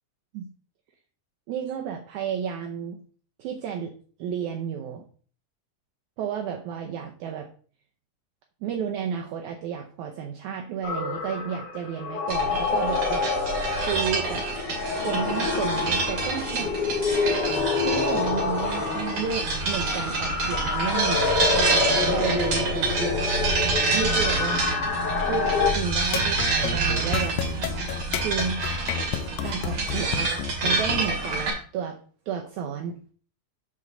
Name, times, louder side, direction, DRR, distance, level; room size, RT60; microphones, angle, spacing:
voice 1, 1.5-3.0 3.4-5.1 6.2-7.5 8.6-13.3 13.9-16.7 17.8-23.3 23.9-24.7 25.3-27.4 28.2-28.6 29.4-30.3 30.6-32.0 32.3-33.1, right 7 dB, 75° right, 3 dB, 2.0 m, -32 dB
sound 1, 10.8-25.7, left 4 dB, 55° left, 1.8 m, -27 dB
sound 2, 12.3-31.5, right 3 dB, 55° right, 3.4 m, -27 dB
sound 3, 26.0-31.0, left 9 dB, 85° left, 1.6 m, -31 dB
7.9 x 3.9 x 6.8 m, 0.43 s
omnidirectional pair, 3.9 m